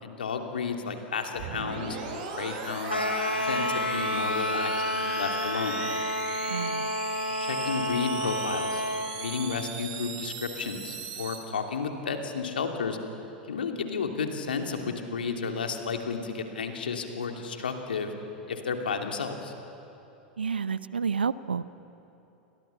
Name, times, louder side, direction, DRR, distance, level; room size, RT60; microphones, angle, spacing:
voice 1, 0.0-3.1 3.4-5.8 7.3-8.8 9.1-13.0 13.5-18.1 18.5-19.5, left 5 dB, 75° left, 4 dB, 2.8 m, -32 dB
sound 1, 1.4-11.4, right 5 dB, 55° right, 6.1 m, -38 dB
sound 2, 2.9-9.1, left 1 dB, 90° left, 2.3 m, -30 dB
voice 2, 6.5-6.9 20.4-21.6, right 6 dB, 80° right, 17 dB, 0.7 m, -29 dB
29.5 x 25.5 x 7.1 m, 3.0 s
figure-of-eight pair, 90°, 5 cm